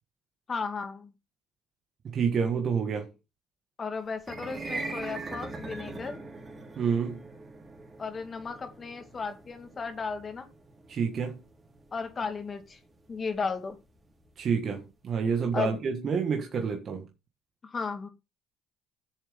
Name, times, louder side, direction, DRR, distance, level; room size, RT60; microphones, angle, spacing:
voice 1, 0.5-1.1 3.8-6.2 8.0-10.5 11.9-12.8 13.1-13.8 15.5-15.8 17.6-18.1, left 5 dB, 35° left, 2.3 m, -34 dB
voice 2, 2.0-3.1 6.7-7.2 10.9-11.4 14.4-17.1, right 6 dB, 50° right, 1.6 m, -28 dB
sound 1, 4.2-14.5, right 3 dB, 30° right, 3.5 m, -42 dB
10.5 x 7.2 x 3.5 m
hypercardioid pair, 60°, 0 cm